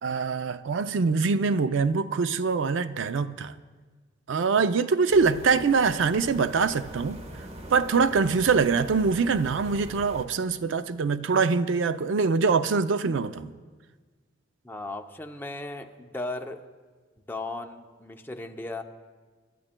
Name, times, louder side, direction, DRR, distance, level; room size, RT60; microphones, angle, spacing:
voice 1, 0.0-3.5 4.3-7.2 7.7-13.5, right 5 dB, 70° right, 0.4 m, -24 dB
sound 1, 5.1-10.3, right 1 dB, 35° right, 0.9 m, -42 dB
voice 2, 14.6-16.6 17.3-18.8, left 2 dB, 10° left, 0.6 m, -36 dB
26.5 x 12.5 x 2.2 m
head